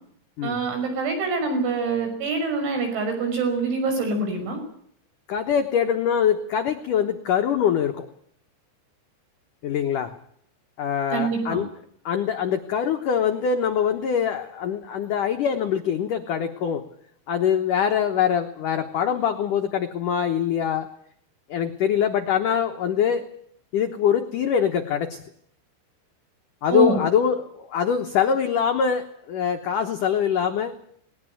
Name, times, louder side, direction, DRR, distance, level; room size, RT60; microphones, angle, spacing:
voice 1, 0.4-4.6 11.1-11.6 26.7-27.0, right 4 dB, 70° right, 5 dB, 8.0 m, -25 dB
voice 2, 5.3-8.1 9.6-10.1 10.8-11.7 12.1-16.8 17.3-20.9 21.5-23.3 23.7-25.2 26.6-30.7, left 8 dB, 85° left, 6 dB, 1.8 m, -23 dB
20.0 x 19.0 x 9.2 m, 0.65 s
omnidirectional pair, 5.7 m